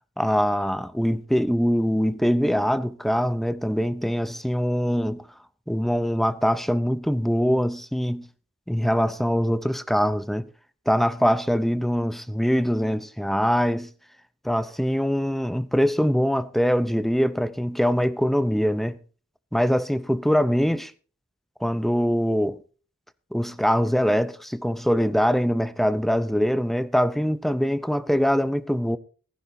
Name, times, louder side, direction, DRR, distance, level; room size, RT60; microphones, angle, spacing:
voice 1, 0.2-5.2 5.7-8.3 8.7-10.5 10.9-13.9 14.4-19.0 19.5-20.9 21.6-22.6 23.3-29.0, equal, ahead, 0.6 m, -23 dB
16.0 x 14.5 x 2.7 m
head